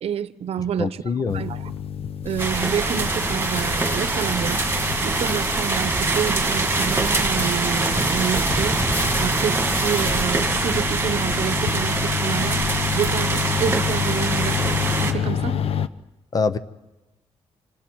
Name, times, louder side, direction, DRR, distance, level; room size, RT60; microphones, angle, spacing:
voice 1, 0.0-1.0 1.3-1.7 2.2-4.6 5.0-8.8 9.2-12.6 12.9-15.6, right 8 dB, 70° right, 14 dB, 0.9 m, -28 dB
voice 2, 0.8-1.4 16.3-16.6, left 4 dB, 35° left, 13 dB, 0.8 m, -24 dB
sound 1, 1.3-15.9, left 8 dB, 65° left, 0.8 m, -29 dB
sound 2, 2.2-13.2, equal, 20° left, 6.5 m, -32 dB
sound 3, 2.4-15.1, right 3 dB, 20° right, 1.9 m, -24 dB
26.0 x 26.0 x 4.7 m, 1.0 s
wide cardioid pair, 150°, 11 cm